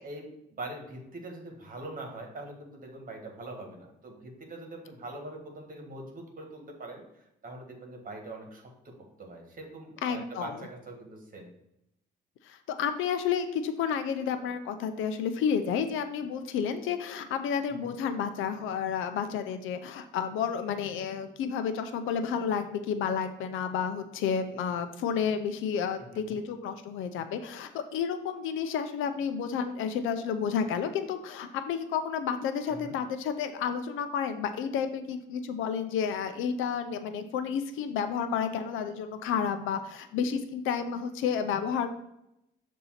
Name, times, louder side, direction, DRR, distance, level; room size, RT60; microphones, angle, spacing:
voice 1, 0.0-7.0 7.4-8.9 9.2-11.5 17.7-17.9 26.0-26.4 32.7-33.0, right 2 dB, 45° right, 2 dB, 1.5 m, -43 dB
voice 2, 10.0-10.6 12.5-41.9, left 7 dB, 85° left, 9 dB, 0.6 m, -31 dB
6.9 x 2.7 x 5.7 m, 0.84 s
cardioid pair, 90°, 20 cm